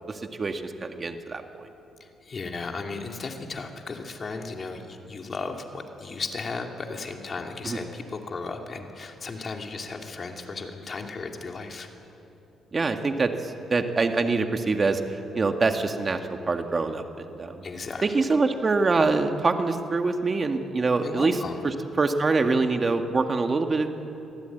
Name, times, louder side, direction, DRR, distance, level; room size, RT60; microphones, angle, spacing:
voice 1, 0.1-1.4 7.6-7.8 12.7-15.0 15.3-17.6 18.0-21.4 21.6-23.9, right 3 dB, 35° right, 6 dB, 1.9 m, -25 dB
voice 2, 2.0-11.9 17.6-18.4 21.0-21.6, left 4 dB, 40° left, 3 dB, 2.8 m, -35 dB
25.0 x 16.5 x 9.4 m, 2.8 s
cardioid pair, 90°, 0 cm